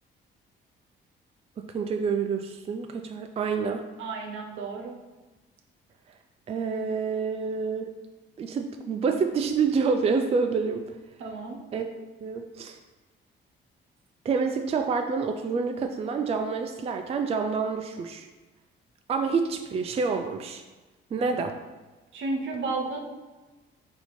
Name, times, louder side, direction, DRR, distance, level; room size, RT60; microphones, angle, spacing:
voice 1, 1.6-3.8 6.5-7.9 8.4-10.9 11.7-12.8 14.2-18.3 19.1-20.6 21.1-21.5, right 5 dB, 30° right, 5 dB, 0.3 m, -28 dB
voice 2, 4.0-4.9 11.2-11.6 22.1-23.0, right 3 dB, 75° right, 1 dB, 0.8 m, -32 dB
4.1 x 2.7 x 4.3 m, 1.2 s
cardioid pair, 90°, 20 cm